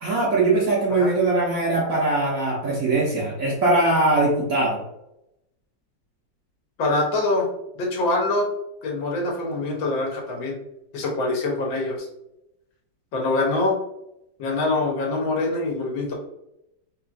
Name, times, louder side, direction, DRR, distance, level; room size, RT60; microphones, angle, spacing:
voice 1, 0.0-4.8, right 2 dB, 60° right, -3 dB, 0.9 m, -21 dB
voice 2, 6.8-7.5 7.8-8.5 8.8-10.6 10.9-12.1 13.1-13.8 14.4-16.1, left 2 dB, 80° left, 0 dB, 1.6 m, -24 dB
3.8 x 3.1 x 2.4 m, 0.84 s
omnidirectional pair, 2.1 m